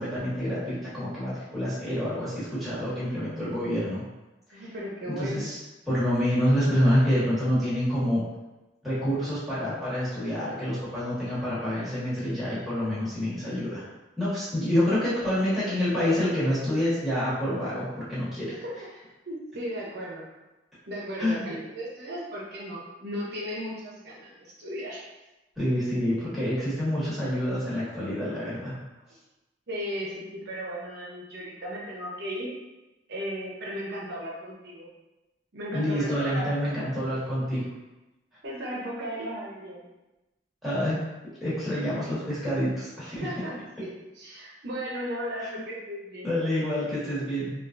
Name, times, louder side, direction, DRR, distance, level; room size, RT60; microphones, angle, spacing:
voice 1, 0.0-4.0 4.5-4.7 5.1-5.6 5.9-8.2 8.8-13.8 14.2-18.6 21.2-21.4 25.6-28.7 35.7-37.7 40.6-41.0 41.4-43.3 45.4-45.5 46.2-47.5, equal, ahead, -11 dB, 1.2 m, -27 dB
voice 2, 4.5-5.5 18.5-18.8 19.3-20.2 20.9-25.0 29.7-32.5 33.1-34.9 35.5-36.5 38.4-39.9 43.1-43.9 44.1-46.3, equal, 65° right, -4 dB, 0.7 m, -36 dB
3.4 x 2.3 x 2.5 m, 1.0 s
head